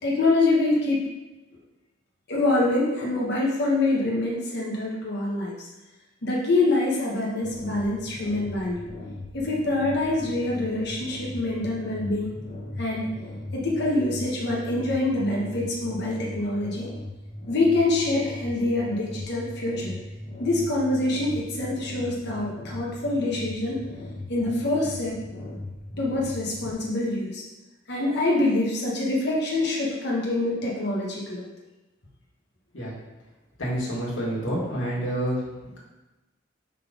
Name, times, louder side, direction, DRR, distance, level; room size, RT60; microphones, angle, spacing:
voice 1, 0.0-1.1 2.3-5.5 6.2-8.8 9.3-12.3 12.8-13.1 13.5-16.9 17.5-19.9 20.4-23.8 24.3-25.2 26.0-27.4 27.9-31.4, left 2 dB, 60° left, -4 dB, 1.3 m, -25 dB
sound 1, 7.4-26.7, left 1 dB, 40° left, 0.9 m, -39 dB
voice 2, 33.6-35.4, right 1 dB, 80° left, -5 dB, 2.1 m, -28 dB
5.4 x 4.0 x 5.2 m, 1.1 s
head